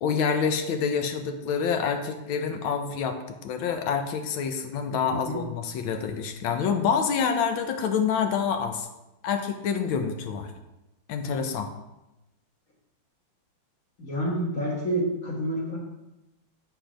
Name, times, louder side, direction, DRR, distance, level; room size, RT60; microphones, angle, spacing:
voice 1, 0.0-8.9 9.2-10.5 11.1-11.7, left 6 dB, 75° left, 6 dB, 1.5 m, -27 dB
voice 2, 14.0-15.8, right 1 dB, 45° left, -5 dB, 1.7 m, -28 dB
7.9 x 4.4 x 5.0 m, 0.96 s
omnidirectional pair, 2.3 m